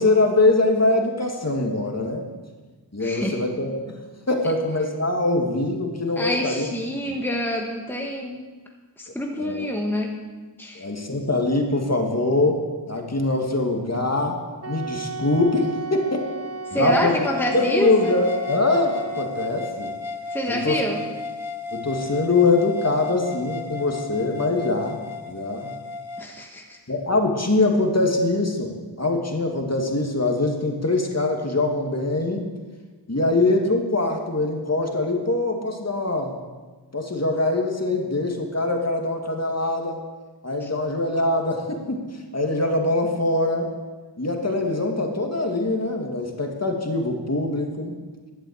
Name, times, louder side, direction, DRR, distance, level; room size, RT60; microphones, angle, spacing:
voice 1, 0.0-2.3 2.9-4.0 4.3-6.7 7.1-7.2 9.4-9.7 10.8-14.4 14.7-16.3 16.7-17.2 17.5-19.9 20.5-20.8 21.7-25.0 25.3-25.7 26.9-32.5 33.1-36.3 36.9-40.0 40.4-42.0 42.3-43.7 44.2-47.9, left 2 dB, 35° left, 2 dB, 2.2 m, -23 dB
voice 2, 3.0-3.4 6.2-8.4 9.0-10.1 10.6-11.2 16.7-18.1 20.3-21.0 26.2-26.8 40.6-40.7, equal, 5° left, 1 dB, 1.4 m, -27 dB
Wind instrument woodwind instrument, 14.6-19.5, right 3 dB, 35° right, 0.7 m, -35 dB
sound 1, 17.2-26.3, left 5 dB, 85° left, 1.0 m, -34 dB
11.5 x 8.0 x 8.1 m, 1.3 s
cardioid pair, 45°, 46 cm